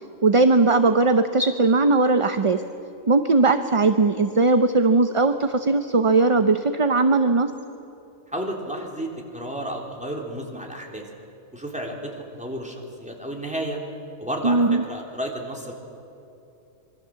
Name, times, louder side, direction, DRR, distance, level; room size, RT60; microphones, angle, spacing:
voice 1, 0.2-2.6 3.1-7.5 14.4-14.8, right 3 dB, 35° right, 8 dB, 0.7 m, -19 dB
voice 2, 8.3-11.0 11.5-13.8 14.2-15.7, right 1 dB, 5° right, -1 dB, 3.4 m, -32 dB
26.0 x 23.0 x 7.6 m, 2.8 s
omnidirectional pair, 1.2 m